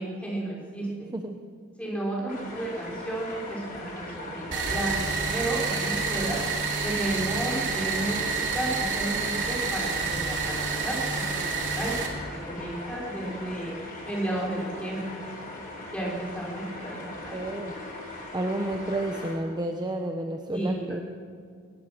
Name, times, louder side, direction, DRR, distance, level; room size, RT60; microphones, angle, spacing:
voice 1, 0.0-1.1 1.8-6.4 6.8-13.8 14.0-15.2 15.9-17.4 20.5-20.8, right 1 dB, 5° left, -4 dB, 5.4 m, -33 dB
sound 1, 2.3-19.3, left 2 dB, 40° left, 4.6 m, -40 dB
sound 2, 4.5-12.1, right 4 dB, 55° right, 3.2 m, -29 dB
voice 2, 17.0-17.7 18.3-21.0, right 1 dB, 20° right, 4 dB, 1.0 m, -31 dB
22.0 x 19.5 x 6.2 m, 2.1 s
head